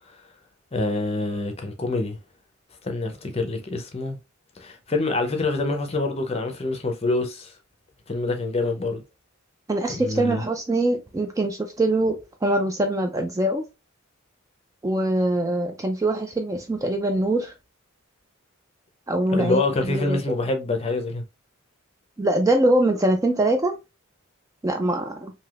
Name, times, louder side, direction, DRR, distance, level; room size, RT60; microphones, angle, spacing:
voice 1, 0.7-2.2 2.8-4.2 4.6-7.5 8.1-9.0 9.9-10.4 19.3-21.2, left 2 dB, 30° left, 0.6 m, -26 dB
voice 2, 9.7-13.6 14.8-17.5 19.1-20.2 22.2-23.7 24.6-25.3, right 1 dB, 15° right, 0.3 m, -23 dB
3.3 x 2.7 x 2.4 m
head